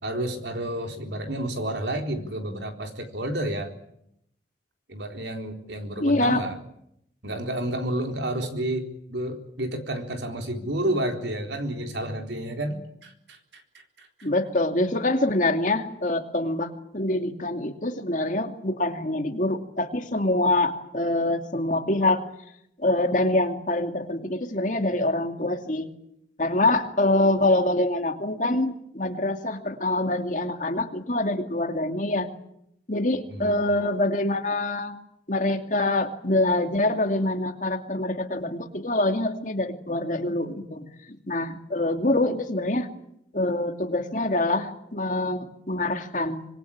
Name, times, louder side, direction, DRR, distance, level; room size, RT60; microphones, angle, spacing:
voice 1, 0.0-3.7 4.9-6.6 7.2-13.6 14.0-14.3 33.3-33.6, right 1 dB, 80° right, 4 dB, 4.0 m, -30 dB
voice 2, 6.0-6.4 14.2-22.2 22.8-25.9 26.4-32.3 32.9-35.0 35.3-42.9 43.3-46.5, left 2 dB, 45° left, 5 dB, 2.6 m, -25 dB
25.5 x 21.5 x 8.9 m, 0.77 s
head